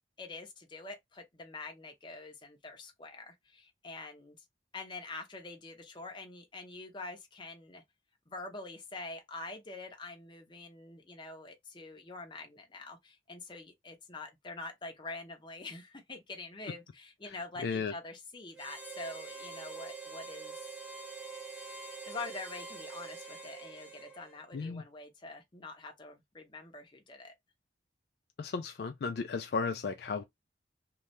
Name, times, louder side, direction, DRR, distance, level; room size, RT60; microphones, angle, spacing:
voice 1, 0.2-4.4 4.7-7.8 8.3-20.6 22.1-27.3, left 3 dB, 25° left, 0.7 m, -45 dB
voice 2, 17.6-17.9 24.5-24.8 28.4-30.2, left 5 dB, 60° left, 0.4 m, -34 dB
Harmonica, 18.5-24.5, right 4 dB, 5° right, 0.9 m, -45 dB
2.7 x 2.3 x 3.1 m
head